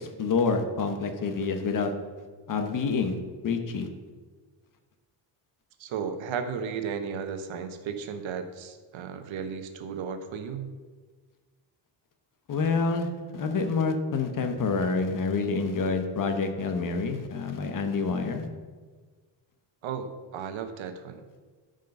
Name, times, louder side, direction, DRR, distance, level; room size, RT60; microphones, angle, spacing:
voice 1, 0.0-1.9 2.5-3.1 3.4-3.9 12.5-18.5, left 4 dB, 45° left, 6 dB, 1.0 m, -27 dB
voice 2, 5.8-10.7 19.8-21.2, right 6 dB, 75° right, 8 dB, 1.0 m, -34 dB
12.0 x 5.2 x 5.4 m, 1.4 s
cardioid pair, 160°, 47 cm